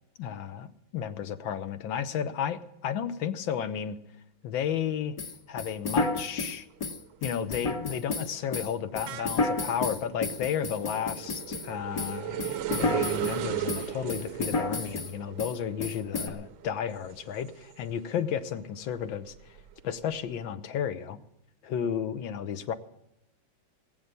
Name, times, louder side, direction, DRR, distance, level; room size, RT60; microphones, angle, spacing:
voice 1, 0.2-4.0 4.4-5.2 5.5-6.7 7.2-19.3 19.8-21.2 21.6-22.7, left 8 dB, 85° left, 11 dB, 1.7 m, -33 dB
sound 1, 5.2-11.7 12.0-13.4 13.7-15.1 15.4-15.5 15.8-16.3, left 3 dB, 50° left, 1.6 m, -31 dB
sound 2, 6.1-6.6 6.9-18.2 18.6-20.3, right 13 dB, 90° right, 1.6 m, -38 dB
19.5 x 8.9 x 6.8 m, 0.81 s
omnidirectional pair, 2.1 m